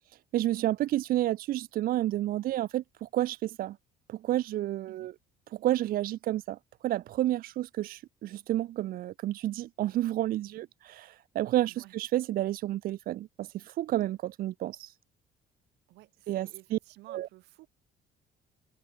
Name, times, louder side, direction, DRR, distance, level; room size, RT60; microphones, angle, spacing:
voice 1, 0.3-3.8 4.1-5.1 5.5-6.6 6.8-14.9 16.3-16.8 17.1-17.3, right 14 dB, 60° right, 0.5 m, -30 dB
voice 2, 15.9-17.7, right 19 dB, 85° right, 4.4 m, -54 dB
cardioid pair, 110°, 17 cm